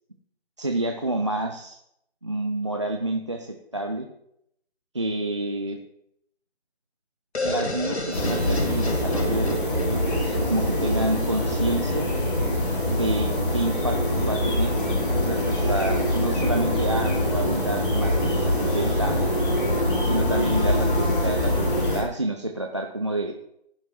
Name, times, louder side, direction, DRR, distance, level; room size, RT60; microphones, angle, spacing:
voice 1, 0.6-1.8 2.2-4.1 4.9-5.8 7.4-12.1 12.9-14.8 15.2-19.3 20.0-23.3, right 1 dB, 30° right, 3 dB, 0.4 m, -29 dB
sound 1, 7.3-11.1, left 1 dB, 80° left, 1.6 m, -31 dB
sound 2, 8.1-22.0, left 1 dB, 50° left, 4.0 m, -24 dB
15.5 x 5.7 x 3.1 m, 0.77 s
figure-of-eight pair, 155°, 32 cm